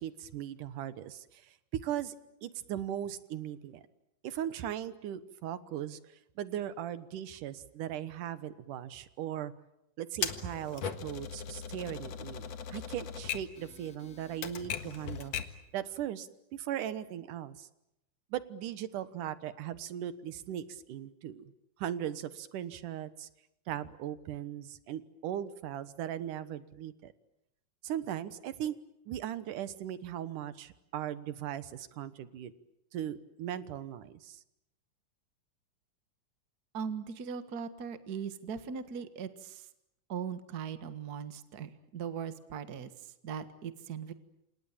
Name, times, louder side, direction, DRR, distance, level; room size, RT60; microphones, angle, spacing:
voice 1, 0.0-2.1 2.4-3.8 4.2-9.5 10.0-15.3 15.7-17.7 18.3-21.4 21.8-23.3 23.7-27.1 27.8-28.8 29.1-32.5 32.9-34.4, right 11 dB, 90° right, 13 dB, 2.8 m, -38 dB
Typewriter, 10.2-15.7, left 7 dB, 60° left, 2.6 m, -39 dB
voice 2, 36.7-39.7 40.1-42.9 43.2-44.1, right 7 dB, 40° right, 10 dB, 1.6 m, -39 dB
28.5 x 27.5 x 7.4 m, 0.83 s
omnidirectional pair, 3.5 m